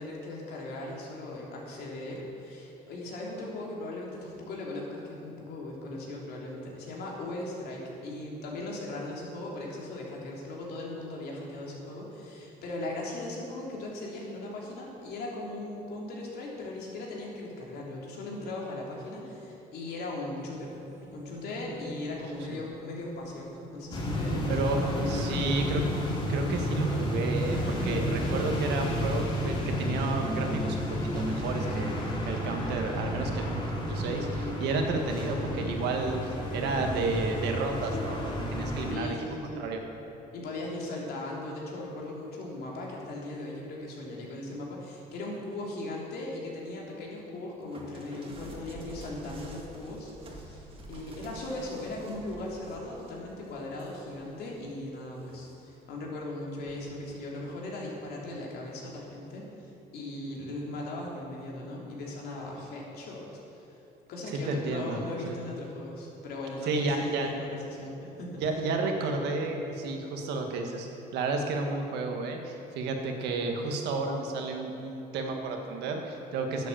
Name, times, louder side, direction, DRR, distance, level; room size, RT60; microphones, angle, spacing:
voice 1, 0.0-20.7 21.1-25.8 38.9-39.6 40.3-63.8 64.1-68.5, left 2 dB, 70° left, -2 dB, 3.0 m, -38 dB
sound 1, 20.5-34.2, right 1 dB, 15° right, 1.4 m, -41 dB
sound 2, 23.9-39.0, equal, 30° left, 2.6 m, -31 dB
voice 2, 24.5-25.8 26.3-32.0 32.2-39.1 39.6-39.8 64.4-65.0 65.3-65.4 66.6-67.3 68.4-70.9 71.1-76.7, right 3 dB, 85° right, 3 dB, 1.7 m, -32 dB
sound 3, 47.7-54.7 55.2-55.8 56.7-57.0, right 1 dB, 30° right, 2.0 m, -48 dB
11.0 x 8.3 x 7.1 m, 2.8 s
cardioid pair, 110°, 17 cm